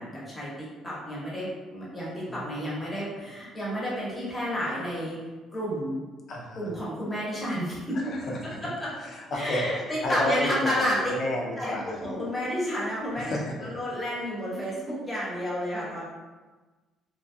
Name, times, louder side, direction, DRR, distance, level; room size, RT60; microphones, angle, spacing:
voice 1, 0.0-5.2 5.5-6.0 6.6-8.0 8.8-8.9 9.3-11.0 11.6-13.4 13.6-16.0, equal, 15° left, -7 dB, 0.9 m, -31 dB
voice 2, 2.3-2.9 6.3-6.7 7.9-8.6 9.0-9.7 10.0-12.0 13.2-13.5, left 1 dB, 45° left, -2 dB, 0.5 m, -32 dB
2.9 x 2.3 x 2.6 m, 1.3 s
cardioid pair, 155°, 0 cm